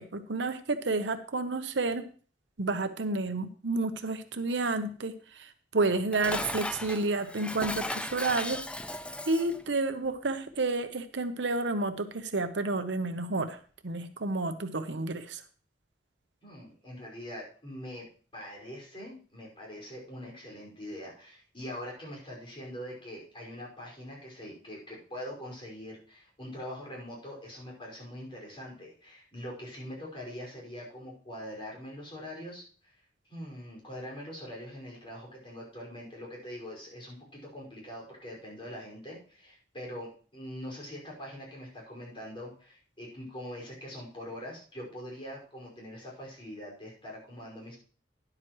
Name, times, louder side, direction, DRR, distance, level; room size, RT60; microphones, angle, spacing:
voice 1, 0.0-2.1 2.6-8.6 9.3-15.4, right 3 dB, 80° right, 9 dB, 0.9 m, -30 dB
Dishes pots and pans, 5.8-9.6, left 1 dB, 5° left, 0.4 m, -37 dB
voice 2, 16.4-18.1 18.3-32.9 33.3-47.8, equal, 30° left, -3 dB, 5.3 m, -43 dB
12.5 x 11.0 x 3.1 m, 0.41 s
head